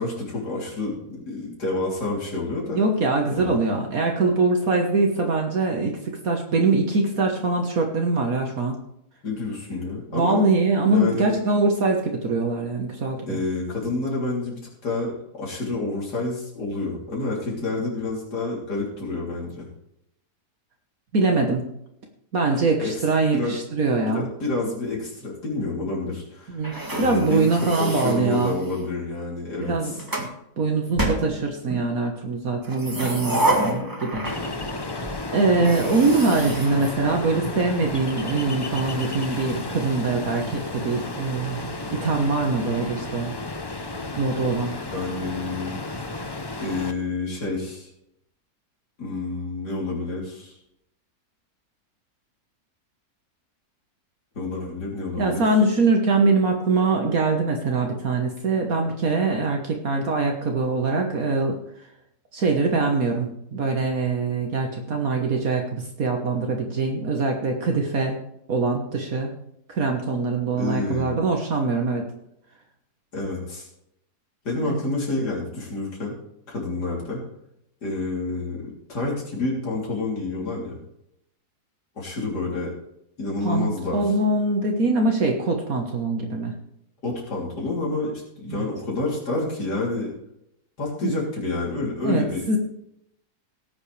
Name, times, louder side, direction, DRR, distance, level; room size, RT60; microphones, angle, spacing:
voice 1, 0.0-2.8 3.3-3.5 9.2-10.4 10.8-11.3 13.3-19.7 22.8-22.9 23.3-23.6 24.1-26.6 26.9-30.0 44.9-46.1 46.6-47.9 49.0-50.6 54.4-55.4 70.5-71.2 73.1-73.7 74.4-76.2 76.5-77.2 77.8-80.8 82.0-82.7 83.2-84.0 87.0-90.1 90.8-92.5, left 3 dB, 85° left, -3 dB, 3.9 m, -29 dB
voice 2, 2.7-8.8 10.1-13.4 21.1-21.7 22.3-24.3 26.5-28.6 29.7-30.3 30.6-34.2 35.3-41.6 41.9-43.3 44.2-44.7 55.2-61.6 62.3-68.2 68.5-69.3 69.7-72.0 74.6-74.8 83.4-86.5 88.5-88.7 91.0-91.1 92.0-92.6, right 3 dB, 60° right, 2 dB, 1.8 m, -23 dB
sound 1, 26.6-28.9 29.6-30.3 31.0-31.9 32.6-34.8 35.0-35.2 35.6-37.6, right 1 dB, 15° right, 1.8 m, -29 dB
Ocean, 34.2-46.9, left 2 dB, 25° left, 0.6 m, -33 dB
18.5 x 8.0 x 3.3 m, 0.78 s
omnidirectional pair, 1.7 m